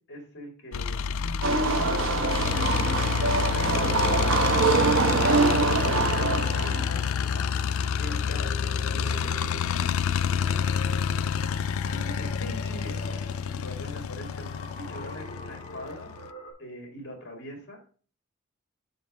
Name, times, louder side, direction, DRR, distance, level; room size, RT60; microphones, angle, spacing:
voice 1, 0.1-2.8 3.5-5.4 5.8-10.6 11.9-16.3 16.6-17.9, left 1 dB, 55° left, 2 dB, 2.6 m, -42 dB
sound 1, 0.7-16.3, left 7 dB, 75° left, 0.4 m, -28 dB
sound 2, 1.4-6.9, right 4 dB, 65° right, 1.0 m, -24 dB
sound 3, 3.3-16.5, equal, 20° left, 2.2 m, -43 dB
5.3 x 5.1 x 6.1 m, 0.41 s
head